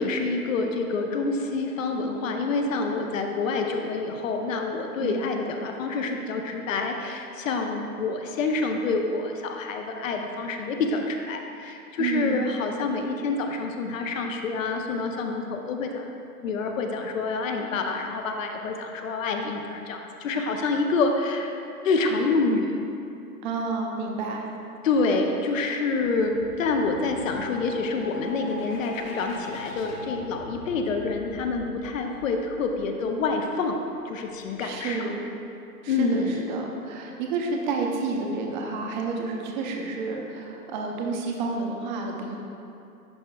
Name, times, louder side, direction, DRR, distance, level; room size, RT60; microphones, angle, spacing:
voice 1, 0.0-16.1 16.4-21.6 21.8-22.8 24.8-33.8 34.0-35.1 35.9-36.6, left 3 dB, 55° left, 4 dB, 0.7 m, -27 dB
voice 2, 12.0-12.5 23.4-24.4 34.6-35.2 35.8-42.4, right 4 dB, 30° right, 1 dB, 0.6 m, -30 dB
sound 1, 25.9-33.6, left 1 dB, 40° left, 1.1 m, -41 dB
10.5 x 4.5 x 2.2 m, 2.7 s
hypercardioid pair, 130°, 48 cm